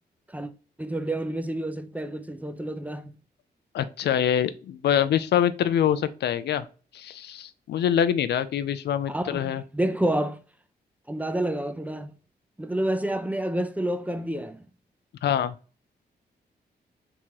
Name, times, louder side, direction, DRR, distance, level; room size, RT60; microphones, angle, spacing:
voice 1, 0.8-3.2 9.1-10.4 11.1-12.1 12.6-14.7, right 1 dB, 10° right, 0.5 m, -29 dB
voice 2, 3.7-6.7 6.9-9.6 15.2-15.5, left 9 dB, 80° left, 0.4 m, -25 dB
3.6 x 2.9 x 4.6 m
cardioid pair, 85°, 17 cm